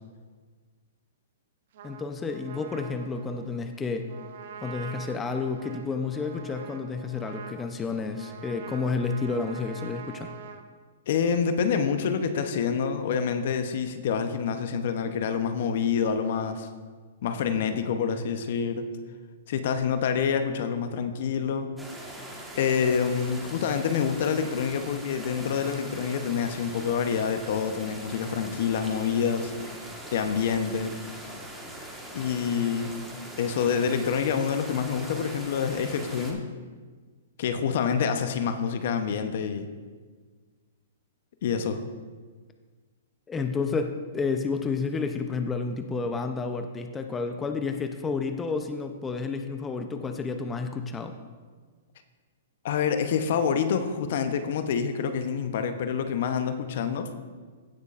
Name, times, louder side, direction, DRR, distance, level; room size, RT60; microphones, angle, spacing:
Trumpet, 1.7-10.6, right 7 dB, 60° right, 0.9 m, -44 dB
voice 1, 1.8-4.1 4.6-10.3 43.3-51.1, left 4 dB, 15° left, 6 dB, 0.6 m, -30 dB
voice 2, 11.1-16.7 17.2-18.9 19.5-21.7 22.5-29.5 30.1-30.9 32.1-32.9 33.4-36.5 37.4-39.7 41.4-41.8 52.6-57.1, left 6 dB, 60° left, 8 dB, 0.8 m, -27 dB
sound 1, 21.8-36.3, right 1 dB, 5° right, 1.4 m, -41 dB
16.0 x 6.4 x 2.5 m, 1.5 s
hypercardioid pair, 130°, 0 cm